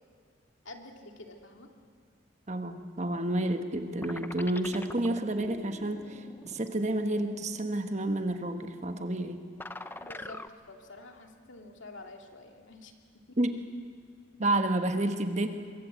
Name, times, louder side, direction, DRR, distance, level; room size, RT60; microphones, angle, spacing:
voice 1, 0.6-1.7 10.0-12.9 13.3-13.4, left 2 dB, 65° left, 3 dB, 2.5 m, -48 dB
voice 2, 2.5-9.4 13.4-13.7 14.4-15.5, right 1 dB, 35° right, 7 dB, 1.3 m, -30 dB
sound 1, 3.2-3.8 4.0-10.5, left 2 dB, 10° left, 0.6 m, -45 dB
24.5 x 23.0 x 8.2 m, 2.2 s
head